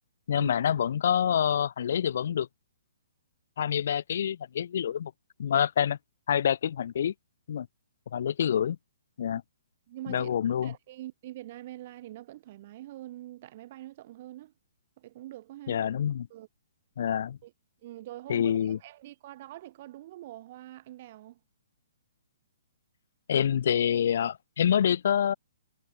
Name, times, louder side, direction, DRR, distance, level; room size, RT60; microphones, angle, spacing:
voice 1, 0.3-2.5 3.6-5.1 5.4-6.0 6.3-7.1 7.5-7.7 8.1-8.8 9.2-9.4 10.1-10.7 15.7-16.3 17.0-17.4 18.3-18.8 23.3-25.3, left 9 dB, 55° left, 1.3 m, -26 dB
voice 2, 9.9-10.3 10.6-14.5 15.0-15.8 16.3-16.5 17.4-17.5 17.8-21.4, right 15 dB, 35° right, 7.8 m, -44 dB
hypercardioid pair, 170°, 0 cm